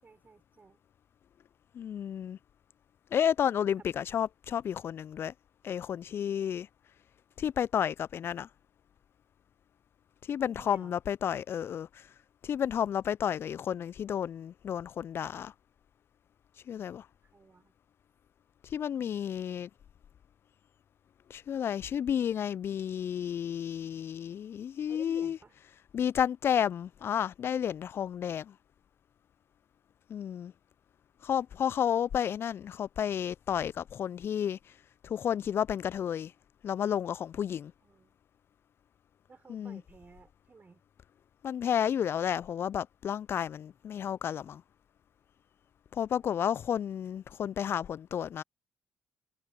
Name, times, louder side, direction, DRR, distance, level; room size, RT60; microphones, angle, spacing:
voice 1, 0.0-0.8 3.8-3.9 10.4-11.0 17.2-17.7 24.9-25.5 37.8-38.2 39.3-40.8 46.2-46.7, right 4 dB, 35° right, 6.4 m, -55 dB
voice 2, 1.7-2.4 3.1-5.3 5.6-6.7 7.4-8.5 10.3-12.1 12.4-15.5 16.7-17.1 18.7-19.7 21.3-25.4 25.9-28.5 30.1-30.5 31.2-34.6 35.0-36.3 36.6-37.7 39.5-39.8 41.4-44.6 45.9-48.4, left 9 dB, 50° left, 0.4 m, -31 dB
hypercardioid pair, 45°, 5 cm